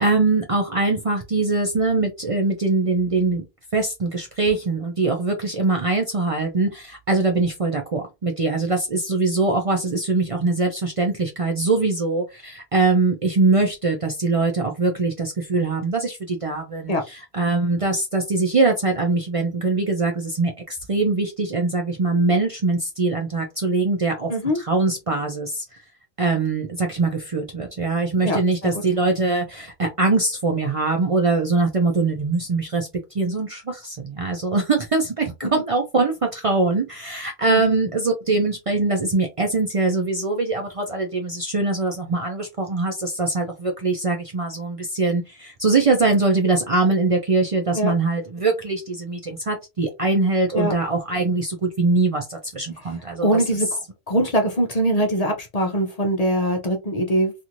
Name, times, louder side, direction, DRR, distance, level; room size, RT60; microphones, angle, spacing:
voice 1, 0.0-3.5 3.7-25.8 26.2-32.9 33.1-53.4, right 3 dB, 45° right, 0.5 m, -22 dB
voice 2, 53.2-53.7 54.1-57.3, right 1 dB, 45° left, 0.6 m, -22 dB
3.0 x 2.5 x 2.5 m
omnidirectional pair, 1.1 m